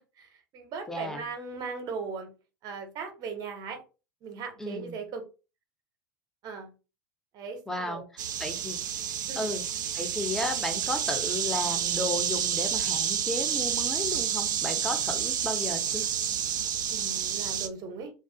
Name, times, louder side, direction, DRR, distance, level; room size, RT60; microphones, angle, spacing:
voice 1, 0.2-2.3 2.6-3.8 4.2-5.2 6.4-6.7 7.3-8.0 9.3-9.5 16.9-18.1, right 5 dB, 40° right, 6 dB, 0.7 m, -38 dB
voice 2, 0.9-1.2 4.6-5.0 7.7-8.8 9.4-9.6 9.9-16.1, left 1 dB, 5° left, 5 dB, 0.6 m, -34 dB
sound 1, 8.2-17.7, right 9 dB, 70° right, 0.4 m, -29 dB
2.4 x 2.3 x 2.6 m, 0.32 s
figure-of-eight pair, 80°, 11 cm